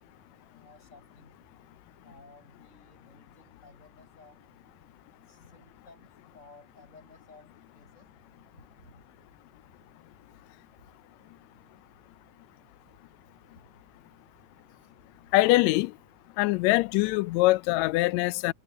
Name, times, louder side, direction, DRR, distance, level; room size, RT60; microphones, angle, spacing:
voice 1, 0.5-1.4 2.0-4.4 5.3-8.1 8.5-9.0 10.8-10.9 13.6-13.7 14.7-14.9, left 3 dB, 20° left, 7.4 m, -56 dB
voice 2, 15.3-16.0 16.4-18.5, left 20 dB, 80° left, 1.6 m, -23 dB
omnidirectional pair, 3.6 m